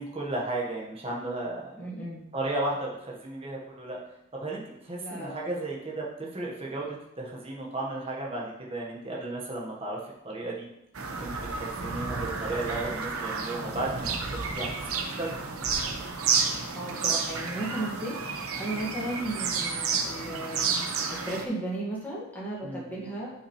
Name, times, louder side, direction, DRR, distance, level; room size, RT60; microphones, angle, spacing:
voice 1, 0.0-1.9 2.3-4.0 4.3-10.0 10.2-10.7 11.2-14.8 15.2-15.3 22.6-23.1, right 2 dB, 25° right, -3 dB, 1.5 m, -34 dB
voice 2, 1.8-2.2 5.0-5.4 11.7-12.1 16.7-23.3, right 1 dB, 10° left, -6 dB, 1.9 m, -35 dB
Bird vocalization bird call bird song, 10.9-21.4, right 5 dB, 85° right, 0.9 m, -31 dB
9.6 x 5.6 x 3.3 m, 0.83 s
head